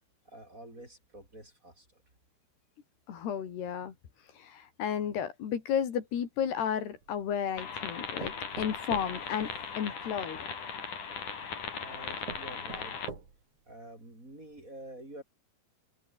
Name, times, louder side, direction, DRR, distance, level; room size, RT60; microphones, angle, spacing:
voice 1, 0.2-2.0 11.8-13.1 13.7-15.2, right 1 dB, 20° right, 7.5 m, -48 dB
voice 2, 3.1-3.9 4.4-10.4, left 8 dB, 80° left, 5.0 m, -33 dB
sound 1, 6.5-7.4 8.2-10.2 11.1-11.2 11.8-11.9 12.3-13.6 14.1-14.2 14.5-14.6, right 5 dB, 50° right, 5.7 m, -45 dB
sound 2, 7.6-13.1, left 6 dB, 50° left, 5.0 m, -38 dB
omnidirectional pair, 4.6 m